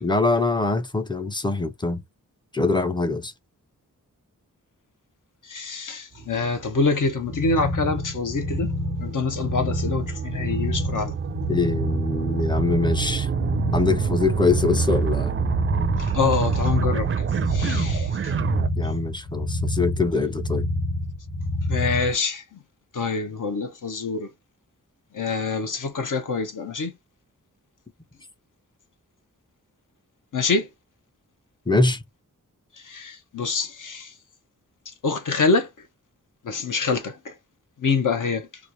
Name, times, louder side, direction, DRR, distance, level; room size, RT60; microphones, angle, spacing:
voice 1, 0.0-2.0 2.5-3.3 11.5-13.3 13.7-15.4 18.8-20.7 31.7-32.0, left 3 dB, 15° left, 0.5 m, -23 dB
voice 2, 5.4-8.7 9.0-11.1 16.0-18.3 21.7-22.6 22.9-24.3 25.1-26.9 30.3-30.7 32.8-34.1 35.0-35.7 36.4-37.3 37.8-38.5, left 4 dB, 70° left, 0.9 m, -26 dB
sound 1, 6.2-18.7, right 7 dB, 40° right, 0.4 m, -28 dB
sound 2, 7.2-22.1, left 1 dB, 35° left, 1.5 m, -28 dB
3.1 x 2.4 x 3.9 m
wide cardioid pair, 140°, 33 cm